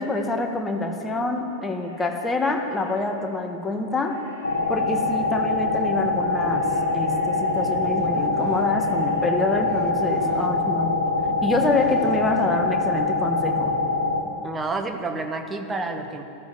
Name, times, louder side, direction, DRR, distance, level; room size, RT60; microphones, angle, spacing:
voice 1, 0.0-4.2 4.7-11.0 11.4-13.7, left 2 dB, 10° left, 3 dB, 1.6 m, -26 dB
sound 1, 1.7-3.0 3.9-5.6 6.5-7.7 8.5-9.4, right 1 dB, 75° right, 2.9 m, -48 dB
sound 2, 4.4-14.2, left 3 dB, 80° left, 1.6 m, -24 dB
sound 3, 5.2-12.7, right 6 dB, 35° right, 1.2 m, -39 dB
voice 2, 14.4-16.2, right 3 dB, 15° right, 6 dB, 1.3 m, -29 dB
13.5 x 13.0 x 7.9 m, 3.0 s
figure-of-eight pair, 90°, 0 cm